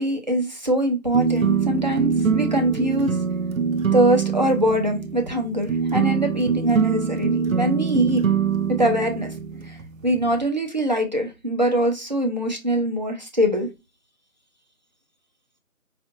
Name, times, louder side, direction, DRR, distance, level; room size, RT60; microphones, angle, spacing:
voice 1, 0.0-3.1 3.9-8.2 8.8-9.3 9.7-9.8 10.0-13.7, right 1 dB, 30° right, 0.7 m, -23 dB
sound 1, 1.1-10.4, right 6 dB, 70° right, 0.7 m, -24 dB
5.4 x 2.5 x 2.5 m
figure-of-eight pair, 170°, 42 cm